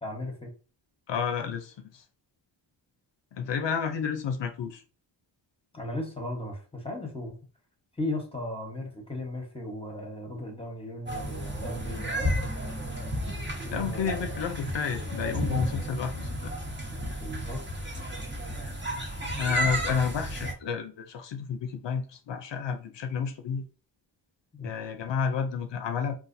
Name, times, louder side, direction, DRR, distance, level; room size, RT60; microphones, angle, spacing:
voice 1, 0.0-0.5 5.7-7.3 8.0-12.3 13.6-14.4 16.9-17.6 24.5-24.7, left 1 dB, 10° left, 1.1 m, -36 dB
voice 2, 1.1-2.0 3.3-4.8 13.7-16.5 19.4-23.6 24.6-26.2, left 6 dB, 70° left, 0.6 m, -31 dB
sound 1, 11.1-20.5, equal, 25° right, 1.0 m, -32 dB
4.0 x 2.5 x 2.6 m
wide cardioid pair, 90°, 44 cm